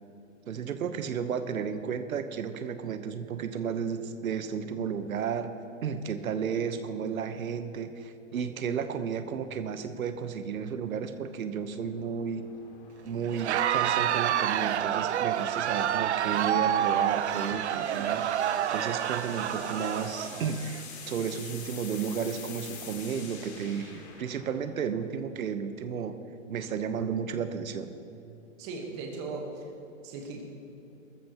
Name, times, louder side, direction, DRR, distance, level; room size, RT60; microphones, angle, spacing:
voice 1, 0.5-5.5 5.8-12.5 13.0-18.3 18.7-26.2 26.5-27.9, right 7 dB, 90° right, 9 dB, 1.1 m, -33 dB
sound 1, 9.3-25.2, left 5 dB, 50° left, 2.4 m, -48 dB
Crowd, 13.3-20.8, right 10 dB, 55° right, 0.5 m, -28 dB
voice 2, 28.6-29.6 30.0-30.4, right 3 dB, 20° right, 1 dB, 1.4 m, -38 dB
20.5 x 14.0 x 3.0 m, 2.8 s
hypercardioid pair, 170°, 41 cm